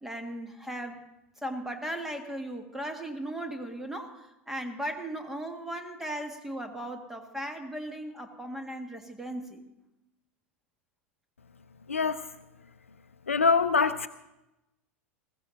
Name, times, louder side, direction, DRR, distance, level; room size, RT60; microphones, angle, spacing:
voice 1, 0.0-1.0 1.4-9.6, right 1 dB, 5° right, 4 dB, 1.7 m, -37 dB
voice 2, 11.9-12.2 13.3-14.1, left 5 dB, 80° left, 11 dB, 0.5 m, -24 dB
20.5 x 15.0 x 3.9 m, 0.92 s
figure-of-eight pair, 85°, 7 cm